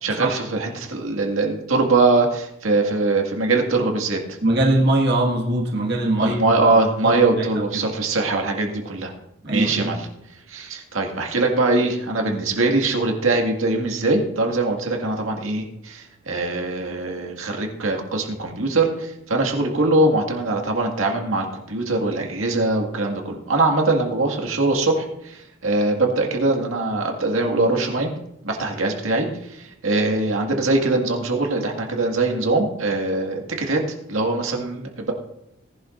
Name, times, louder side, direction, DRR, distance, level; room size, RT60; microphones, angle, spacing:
voice 1, 0.0-4.2 6.2-9.1 9.5-10.1 10.5-28.1 28.4-33.8 34.1-35.1, right 2 dB, 85° right, 2 dB, 2.0 m, -22 dB
voice 2, 4.4-7.9 9.4-9.9, right 1 dB, 55° right, -1 dB, 1.8 m, -22 dB
18.5 x 11.5 x 2.6 m, 0.84 s
head